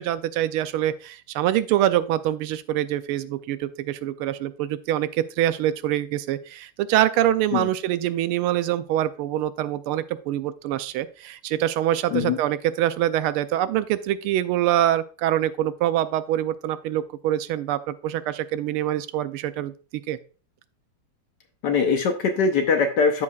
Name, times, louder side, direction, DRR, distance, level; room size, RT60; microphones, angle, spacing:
voice 1, 0.0-19.7 20.1-20.2, right 12 dB, 80° right, 13 dB, 1.4 m, -25 dB
voice 2, 21.6-23.2, left 5 dB, 65° left, 6 dB, 1.2 m, -22 dB
13.5 x 4.9 x 2.3 m, 0.37 s
omnidirectional pair, 2.4 m